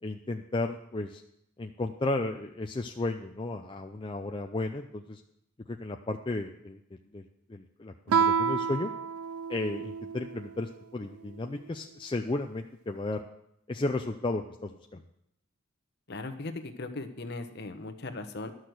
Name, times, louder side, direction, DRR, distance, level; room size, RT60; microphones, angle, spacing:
voice 1, 0.0-1.2 1.6-5.2 5.7-6.8 7.1-8.9 9.5-13.2 13.7-15.0, left 2 dB, 20° left, 4 dB, 0.4 m, -34 dB
Guitar, 8.1-10.5, right 6 dB, 75° right, 0.4 m, -29 dB
voice 2, 16.1-18.5, left 2 dB, 50° left, 8 dB, 1.0 m, -38 dB
12.0 x 6.4 x 7.8 m, 0.78 s
head